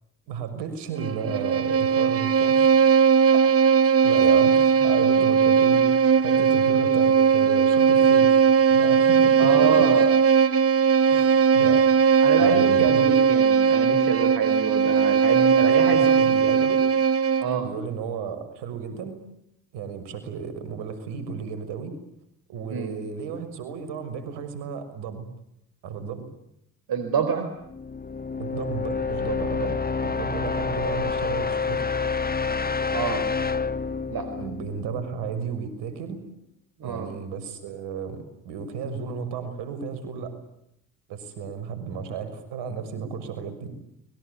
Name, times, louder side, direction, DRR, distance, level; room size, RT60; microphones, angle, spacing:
voice 1, 0.3-2.7 3.3-3.5 3.8-6.0 6.2-8.4 8.7-9.9 11.0-11.8 12.4-13.4 15.6-16.8 17.6-19.2 19.7-22.0 22.5-25.3 25.8-26.3 28.4-31.9 34.3-36.2 36.8-40.3 41.1-43.7, right 6 dB, 75° right, 10 dB, 6.1 m, -34 dB
Bowed string instrument, 1.0-17.6, right 6 dB, 35° right, 1.0 m, -19 dB
voice 2, 9.4-10.1 11.1-11.3 12.2-16.3 17.4-17.7 22.7-22.9 26.9-27.5 32.9-33.3 34.1-34.3 36.8-37.1 42.9-43.1, right 6 dB, 55° right, 9 dB, 4.5 m, -26 dB
sound 1, 27.7-35.5, left 4 dB, 20° left, 1.3 m, -28 dB
30.0 x 22.5 x 8.4 m, 0.77 s
hypercardioid pair, 50°, 42 cm